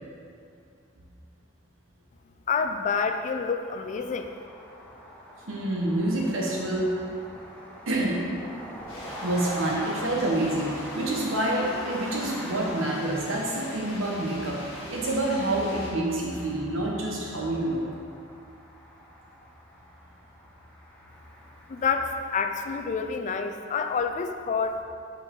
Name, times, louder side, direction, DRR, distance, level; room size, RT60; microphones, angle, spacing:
voice 1, 2.5-4.3 21.7-24.8, left 5 dB, 40° left, 7 dB, 0.3 m, -28 dB
sound 1, 3.6-22.4, equal, 5° left, 0.7 m, -43 dB
voice 2, 5.5-6.9 7.9-8.3 9.2-17.8, right 1 dB, 80° right, -3 dB, 1.1 m, -27 dB
sound 2, 8.9-15.9, left 1 dB, 85° left, 1.3 m, -43 dB
5.6 x 4.4 x 3.7 m, 2.3 s
head